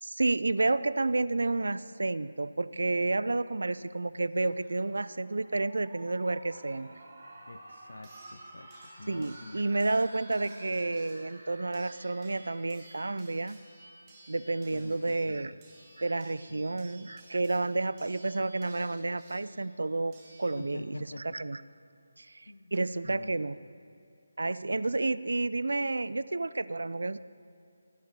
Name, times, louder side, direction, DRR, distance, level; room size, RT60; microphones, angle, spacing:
voice 1, 0.0-6.9 9.1-13.7 14.3-15.5 16.0-20.9 21.3-21.6 22.2-23.6 24.4-27.2, right 2 dB, 80° right, 16 dB, 0.3 m, -30 dB
sound 1, 4.3-13.2, right 2 dB, 45° right, 2.5 m, -52 dB
sound 2, 6.6-6.7 8.0-21.0 22.3-22.4 22.7-22.8, right 2 dB, 15° right, 1.8 m, -56 dB
voice 2, 7.5-9.6 14.7-15.6 16.5-17.2 20.6-21.4 22.5-22.7 23.0-23.6, left 2 dB, 80° left, 9 dB, 0.6 m, -47 dB
17.0 x 6.6 x 4.7 m, 2.6 s
figure-of-eight pair, 170°, 0 cm